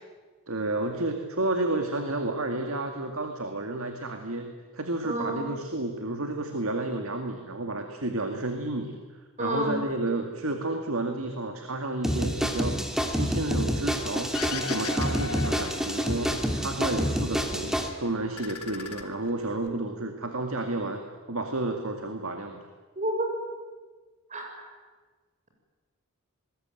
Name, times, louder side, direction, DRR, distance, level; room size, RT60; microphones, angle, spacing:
voice 1, 0.5-9.0 9.4-12.8 13.1-21.0 21.3-22.6, right 2 dB, 65° right, 5 dB, 2.2 m, -31 dB
voice 2, 5.0-5.5 9.4-9.8 22.9-23.3 24.3-24.6, right 1 dB, 35° right, 2 dB, 6.8 m, -29 dB
sound 1, 12.0-17.9, equal, ahead, 2.4 m, -28 dB
sound 2, 14.3-16.7 17.0-17.8 18.2-19.7, left 4 dB, 80° left, 2.6 m, -38 dB
27.0 x 21.0 x 9.2 m, 1.4 s
head